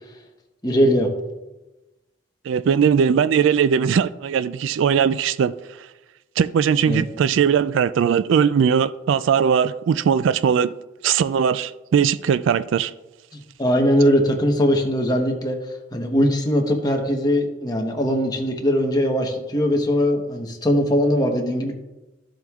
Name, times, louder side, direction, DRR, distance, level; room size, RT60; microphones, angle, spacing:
voice 1, 0.6-1.1 6.9-7.0 13.6-15.6 15.9-21.7, equal, 20° left, 1.0 m, -20 dB
voice 2, 2.5-5.5 6.4-10.7 11.0-12.9, right 7 dB, 75° right, 0.3 m, -19 dB
13.5 x 7.6 x 2.4 m
head